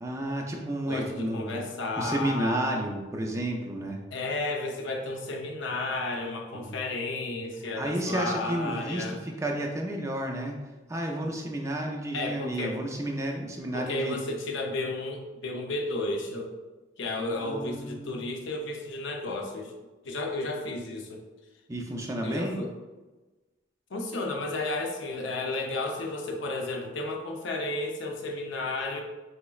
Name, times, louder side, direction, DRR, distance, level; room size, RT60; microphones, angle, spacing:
voice 1, 0.0-1.6 2.0-4.0 6.5-6.8 7.7-10.6 10.9-14.2 17.3-18.2 21.7-22.6, right 1 dB, 15° right, 1 dB, 0.3 m, -31 dB
voice 2, 0.9-2.6 4.1-9.2 12.1-12.8 13.7-16.5 17.0-19.8 20.0-21.2 22.2-22.7 23.9-29.0, left 2 dB, 75° left, 2 dB, 0.6 m, -32 dB
3.9 x 3.1 x 2.3 m, 1.2 s
head